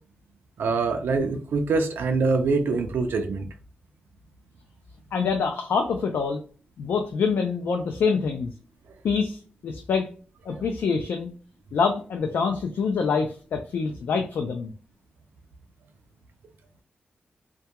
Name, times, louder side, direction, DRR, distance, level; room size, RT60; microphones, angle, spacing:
voice 1, 0.6-3.5, right 4 dB, 75° right, 5 dB, 0.3 m, -24 dB
voice 2, 5.1-6.4 6.8-8.5 9.0-10.1 10.5-11.3 11.7-14.7, left 5 dB, 80° left, 4 dB, 0.3 m, -25 dB
2.2 x 2.2 x 2.8 m, 0.38 s
wide cardioid pair, 175°, 4 cm